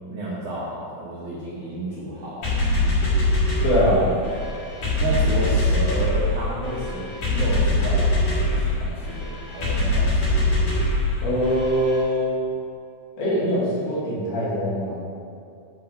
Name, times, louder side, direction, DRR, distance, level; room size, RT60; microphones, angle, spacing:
voice 1, 0.1-2.6 5.0-10.4, right 1 dB, 85° right, -7 dB, 1.3 m, -31 dB
sound 1, 2.4-12.0, left 1 dB, 50° left, 3.1 m, -23 dB
voice 2, 3.6-4.1 11.2-12.4 13.2-15.0, equal, 75° left, -7 dB, 3.9 m, -22 dB
9.1 x 3.9 x 5.7 m, 2.4 s
omnidirectional pair, 4.6 m